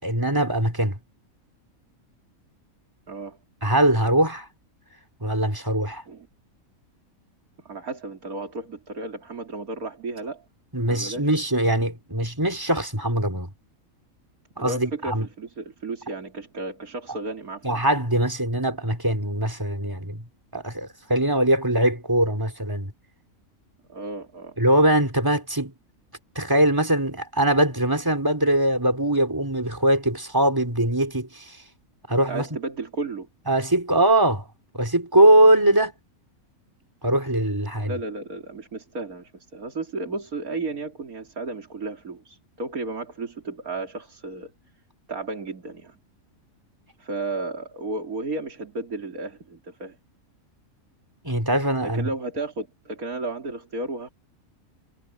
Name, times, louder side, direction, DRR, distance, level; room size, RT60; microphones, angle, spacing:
voice 1, 0.0-1.0 3.6-4.5 5.2-6.0 10.7-13.5 14.6-15.3 17.6-20.2 20.5-22.9 24.6-25.7 26.3-31.6 32.1-32.5 33.5-34.5 34.7-35.9 37.0-37.9 51.2-52.1, right 1 dB, 15° right, 4.5 m, -22 dB
voice 2, 3.1-3.4 6.1-6.3 7.6-10.4 10.8-11.3 14.6-17.8 23.9-24.6 32.1-33.3 35.7-35.8 37.8-44.5 45.1-46.0 47.0-50.0 51.8-54.1, right 2 dB, 85° right, 3.5 m, -33 dB
omnidirectional pair, 1.5 m